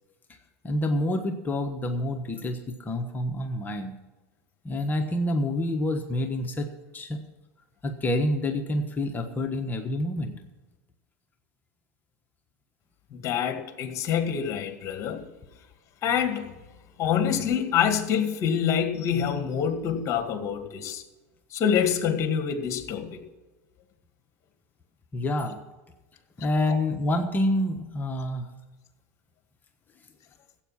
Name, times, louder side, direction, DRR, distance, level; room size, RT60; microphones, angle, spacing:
voice 1, 0.6-3.9 4.6-7.2 7.8-10.3 25.1-25.6 26.4-28.5, left 1 dB, 20° left, 4 dB, 1.3 m, -27 dB
voice 2, 13.1-15.3 16.0-16.5 17.0-21.0 21.5-23.2, left 8 dB, 40° left, 6 dB, 2.1 m, -26 dB
15.0 x 8.4 x 5.9 m, 1.1 s
hypercardioid pair, 105°, 8 cm